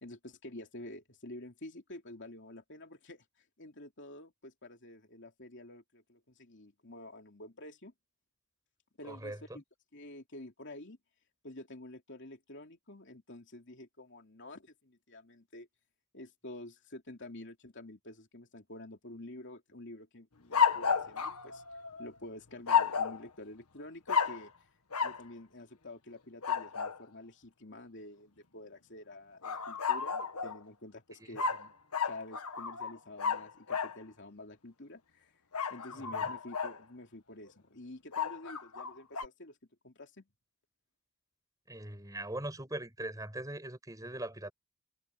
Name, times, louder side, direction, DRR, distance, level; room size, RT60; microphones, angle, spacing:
voice 1, 0.0-3.2 3.6-7.9 9.0-9.6 9.9-11.0 11.4-15.7 16.1-21.6 22.0-24.5 25.0-31.7 32.0-35.3 35.7-39.6 39.8-40.3, left 1 dB, 55° left, 3.2 m, -49 dB
voice 2, 9.1-9.6 31.2-31.3 36.1-36.3 41.7-44.5, right 1 dB, 15° right, 5.8 m, -41 dB
sound 1, 20.5-22.1 22.7-23.2 24.1-24.5 24.9-25.2 26.4-27.0 29.4-30.6 31.3-34.0 35.5-36.8 38.1-39.3, left 6 dB, 85° left, 1.7 m, -32 dB
head